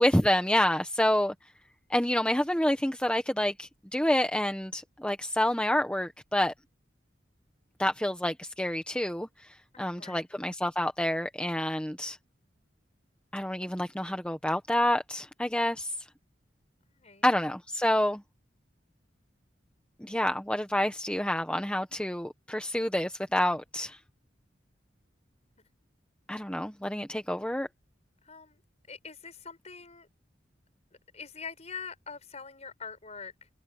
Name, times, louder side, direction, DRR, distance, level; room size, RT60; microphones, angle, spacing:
voice 1, 0.0-1.3 1.9-6.5 7.8-12.2 13.3-15.9 17.2-18.2 20.0-24.0 26.3-27.7, left 1 dB, 5° left, 1.0 m, -28 dB
voice 2, 9.7-10.3 16.9-17.3 28.2-28.6 28.9-30.1 30.9-33.5, left 5 dB, 40° left, 6.0 m, -44 dB
head